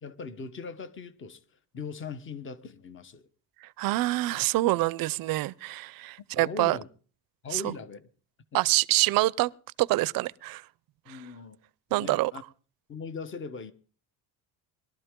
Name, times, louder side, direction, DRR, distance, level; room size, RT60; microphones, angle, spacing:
voice 1, 0.0-1.4 1.7-3.3 6.4-6.9 7.4-8.1 11.1-11.6 11.9-12.4 12.9-13.7, left 5 dB, 30° left, 1.2 m, -40 dB
voice 2, 3.6-6.8 7.5-7.7 8.5-9.5 9.8-10.6 11.1-11.2 11.9-12.3, right 18 dB, 55° right, 0.6 m, -26 dB
21.5 x 12.5 x 3.7 m
cardioid pair, 145°, 42 cm